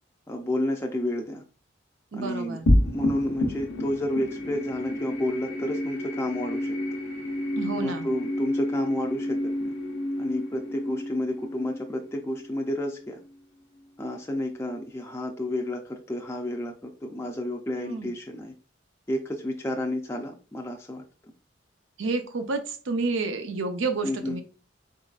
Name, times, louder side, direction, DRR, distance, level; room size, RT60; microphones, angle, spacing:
voice 1, 0.3-1.4 2.1-2.6 2.9-7.0 7.8-9.7 10.2-13.2 14.0-18.5 19.1-21.0 24.0-24.4, left 1 dB, 15° left, 1 dB, 0.4 m, -31 dB
voice 2, 2.1-2.7 7.6-8.1 17.8-18.1 22.0-24.4, right 3 dB, 90° right, 7 dB, 0.6 m, -30 dB
sound 1, 2.7-13.3, left 1 dB, 85° left, 0.9 m, -29 dB
4.0 x 3.8 x 2.4 m, 0.36 s
head